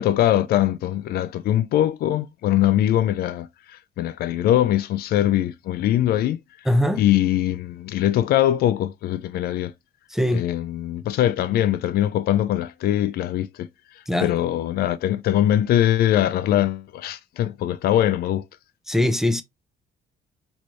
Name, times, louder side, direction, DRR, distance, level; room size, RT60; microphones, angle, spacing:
voice 1, 0.0-3.5 4.0-6.4 7.0-9.7 10.3-13.7 14.2-18.4, left 12 dB, 65° left, 0.5 m, -22 dB
voice 2, 6.7-7.0 10.1-10.4 14.1-14.3 18.9-19.4, left 1 dB, ahead, 0.4 m, -21 dB
3.1 x 3.0 x 3.0 m
cardioid pair, 110°, 17 cm